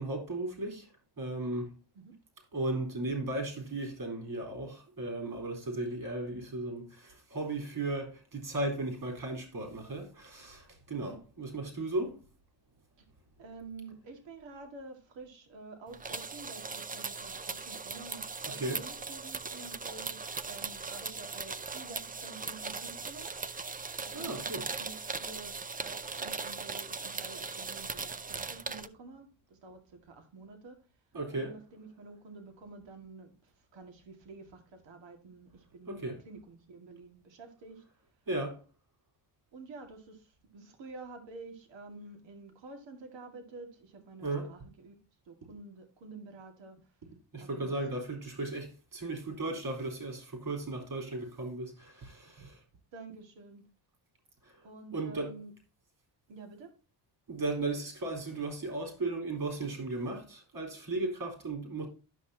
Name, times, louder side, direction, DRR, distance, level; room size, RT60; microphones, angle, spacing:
voice 1, 0.0-1.7 2.5-12.2 18.6-18.8 24.1-24.6 31.1-31.5 35.9-36.2 38.3-38.6 44.2-44.6 47.3-52.6 54.4-54.7 54.9-55.3 57.3-61.9, right 2 dB, 55° right, 3.9 m, -36 dB
voice 2, 13.4-23.3 24.1-30.8 31.3-37.8 39.5-45.0 45.3-46.8 47.4-47.7 52.9-53.7 54.6-55.5 56.3-56.7, right 3 dB, 80° right, 2.1 m, -49 dB
sound 1, 15.9-28.9, right 4 dB, 20° right, 0.5 m, -39 dB
11.5 x 6.1 x 2.8 m
cardioid pair, 95°, 43 cm